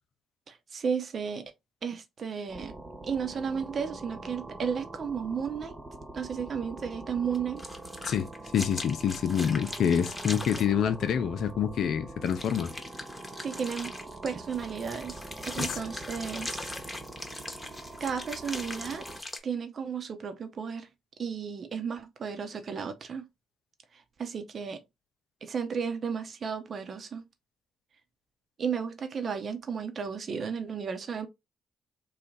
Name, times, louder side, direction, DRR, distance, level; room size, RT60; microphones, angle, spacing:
voice 1, 0.5-1.4 1.8-2.7 3.0-5.7 6.1-7.6 13.4-13.9 14.2-16.7 18.0-19.1 19.4-20.9 21.2-23.2 23.9-24.8 25.4-27.2 28.6-31.3, right 6 dB, 50° right, 0.9 m, -33 dB
sound 1, 2.5-19.2, right 2 dB, 30° right, 1.1 m, -44 dB
sound 2, 7.3-10.7 12.3-19.4, left 2 dB, 20° left, 1.0 m, -40 dB
voice 2, 8.0-12.7 15.6-15.8, left 8 dB, 65° left, 0.6 m, -27 dB
3.3 x 2.4 x 3.9 m
hypercardioid pair, 50°, 0 cm